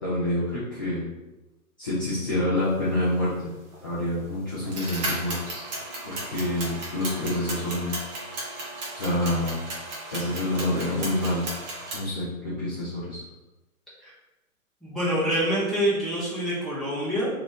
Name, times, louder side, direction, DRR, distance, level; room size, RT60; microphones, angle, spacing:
voice 1, 0.0-1.1 1.8-3.5 3.8-5.6 6.0-7.9 8.9-9.6 10.1-11.4 11.9-13.2, left 1 dB, 15° left, -10 dB, 0.4 m, -27 dB
sound 1, 3.7-3.8 4.6-12.0, right 1 dB, 30° right, 0.9 m, -35 dB
voice 2, 14.8-17.3, equal, ahead, -11 dB, 1.0 m, -26 dB
2.9 x 2.8 x 3.6 m, 1.0 s
figure-of-eight pair, 130°, 42 cm